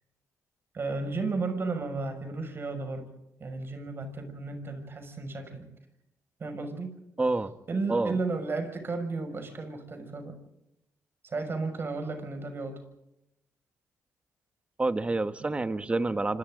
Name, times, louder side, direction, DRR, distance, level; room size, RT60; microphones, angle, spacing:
voice 1, 0.7-3.1 3.4-5.7 6.4-7.0 7.7-10.4 11.2-12.8, right 3 dB, 40° right, 7 dB, 6.4 m, -33 dB
voice 2, 7.2-7.5 7.9-8.2 14.8-16.4, right 2 dB, 20° right, 10 dB, 1.5 m, -28 dB
28.5 x 26.0 x 3.9 m, 0.86 s
cardioid pair, 95°, 6 cm